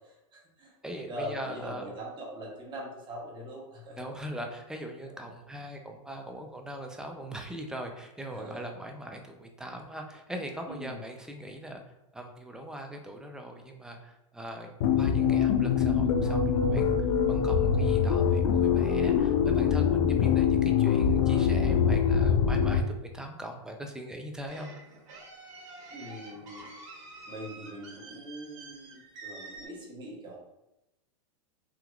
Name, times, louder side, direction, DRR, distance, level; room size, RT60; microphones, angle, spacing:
voice 1, 0.3-0.7 1.1-4.1 8.3-8.6 10.7-11.0 25.9-26.7 27.3-30.4, equal, 25° right, -2 dB, 1.0 m, -42 dB
voice 2, 0.8-1.9 4.0-11.8 12.1-24.7, right 1 dB, 5° right, 3 dB, 0.3 m, -41 dB
sound 1, 14.8-22.8, left 7 dB, 70° left, 0.4 m, -24 dB
sound 2, 24.5-29.7, right 3 dB, 65° right, 1.2 m, -47 dB
3.6 x 2.8 x 2.3 m, 0.92 s
hypercardioid pair, 120°, 17 cm